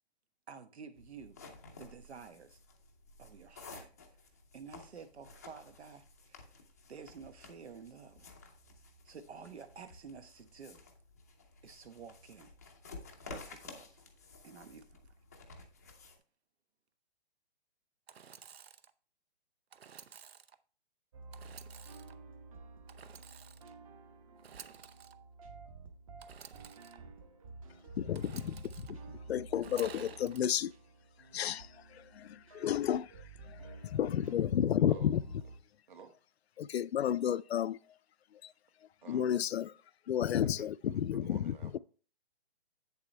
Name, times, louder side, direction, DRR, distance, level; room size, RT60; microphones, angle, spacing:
voice 1, 0.5-1.4 1.8-2.6 3.2-3.9 4.5-6.5 6.9-8.4 9.0-10.8 11.6-12.5 13.2-14.0 14.4-15.1, right 6 dB, 85° right, 1.3 m, -51 dB
sound 1, 1.0-16.2, left 3 dB, 15° left, 0.5 m, -53 dB
Engine / Sawing, 18.1-18.9 19.7-20.5 21.3-22.1 22.9-23.7 24.4-25.1 26.2-27.0 28.1-28.9 29.5-30.5, right 7 dB, 70° right, 0.8 m, -52 dB
sound 2, 21.1-35.6, right 3 dB, 35° right, 1.0 m, -51 dB
voice 2, 28.0-29.0 29.3-30.7 31.3-31.7 31.9-33.1 33.5-35.2 36.6-37.8 38.4-38.5 39.1-39.7 40.1-41.8, left 10 dB, 75° left, 0.5 m, -32 dB
voice 3, 34.8-35.2 35.9-36.1 39.0-39.5 40.2-41.8, right 5 dB, 50° right, 1.4 m, -53 dB
8.2 x 7.0 x 3.3 m
hypercardioid pair, 170°, 32 cm